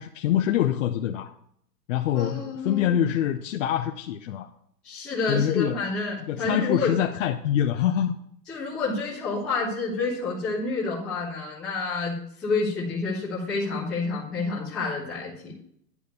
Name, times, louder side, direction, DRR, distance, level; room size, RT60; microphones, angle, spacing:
voice 1, 0.0-1.3 1.9-4.5 5.3-5.8 6.3-8.1, left 10 dB, 50° left, 0.7 m, -25 dB
voice 2, 2.1-3.0 4.8-6.9 8.5-15.6, left 3 dB, ahead, 0.3 m, -29 dB
10.0 x 5.1 x 6.8 m
hypercardioid pair, 145°, 49 cm